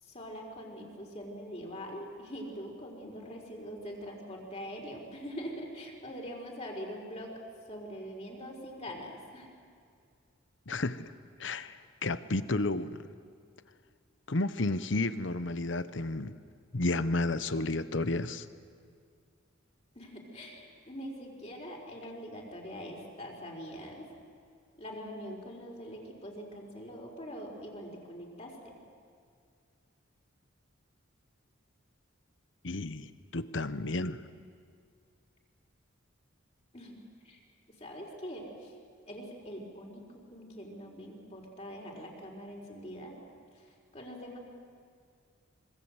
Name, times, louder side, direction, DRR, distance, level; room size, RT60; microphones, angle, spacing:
voice 1, 0.0-7.4 7.7-9.5 19.9-24.1 24.8-28.8 36.7-37.0 37.2-37.4 37.8-38.7 39.1-43.2 43.5-44.4, equal, 30° left, -1 dB, 4.4 m, -43 dB
voice 2, 10.7-11.1 11.4-13.1 14.3-16.4 16.7-18.5 32.6-34.2, left 2 dB, 60° left, 13 dB, 1.0 m, -32 dB
26.0 x 24.0 x 8.1 m, 2.2 s
head